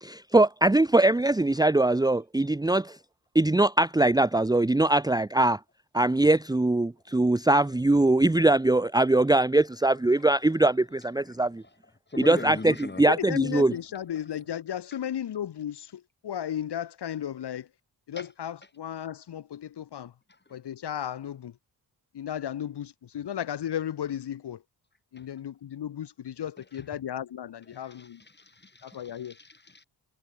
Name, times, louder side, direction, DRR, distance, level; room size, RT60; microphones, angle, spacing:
voice 1, 0.0-3.0 3.3-5.6 5.9-11.6 12.2-13.7, right 2 dB, 10° right, 0.9 m, -22 dB
voice 2, 12.1-13.0 18.2-18.3 27.7-29.8, left 3 dB, 25° left, 6.7 m, -40 dB
voice 3, 13.1-17.7 18.1-20.1 20.5-21.5 22.1-24.6 25.1-28.2 28.8-29.4, left 10 dB, 70° left, 1.7 m, -34 dB
cardioid pair, 85°, 41 cm